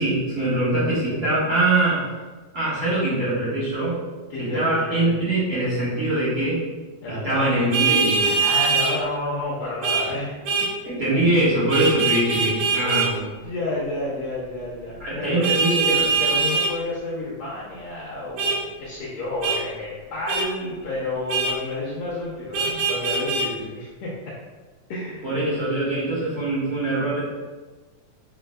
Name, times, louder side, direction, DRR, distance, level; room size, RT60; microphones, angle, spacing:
voice 1, 0.0-2.0 2.5-4.0 4.4-6.6 7.1-8.3 10.8-13.2 15.0-15.9 25.2-27.3, right 2 dB, 45° right, -10 dB, 1.3 m, -23 dB
voice 2, 4.3-5.3 7.0-7.5 8.2-10.4 11.8-12.1 12.7-13.1 13.4-15.5 15.9-24.4 24.9-25.3, left 2 dB, 70° left, -6 dB, 1.8 m, -30 dB
Vehicle horn car horn honking, 7.7-8.9 9.8-10.0 10.4-10.7 11.7-13.1 15.4-16.7 18.4-18.6 19.4-19.6 20.3-20.5 21.3-21.5 22.5-23.5, right 4 dB, 85° right, 2.3 m, -22 dB
5.5 x 4.3 x 2.2 m, 1.3 s
omnidirectional pair, 3.4 m